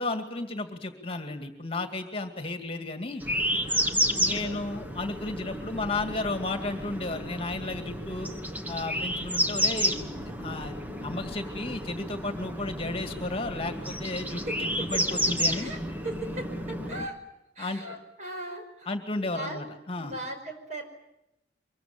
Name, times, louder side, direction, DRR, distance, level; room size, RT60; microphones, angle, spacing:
voice 1, 0.0-3.2 3.9-8.3 8.7-14.4 14.8-15.7 17.6-17.8 18.9-20.1, left 2 dB, 35° left, 6 dB, 2.2 m, -33 dB
sound 1, 3.2-17.1, equal, 10° right, 1.5 m, -31 dB
voice 2, 3.7-4.6 14.5-14.6 15.5-15.8 16.0-17.2 17.6-18.9 19.3-19.6 20.0-20.8, right 1 dB, 45° right, 4 dB, 5.4 m, -38 dB
24.0 x 23.0 x 8.9 m, 0.86 s
head